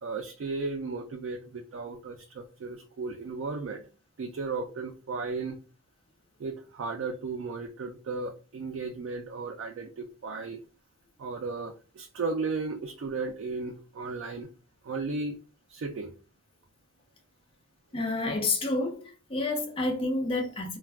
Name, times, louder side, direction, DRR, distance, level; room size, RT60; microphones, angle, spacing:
voice 1, 0.0-3.8 4.2-5.6 6.4-10.6 11.2-14.5 14.8-15.4 15.7-16.1, right 4 dB, 65° right, 0.4 m, -35 dB
voice 2, 17.9-20.8, left 2 dB, 25° left, 0.5 m, -29 dB
2.2 x 2.2 x 3.4 m
head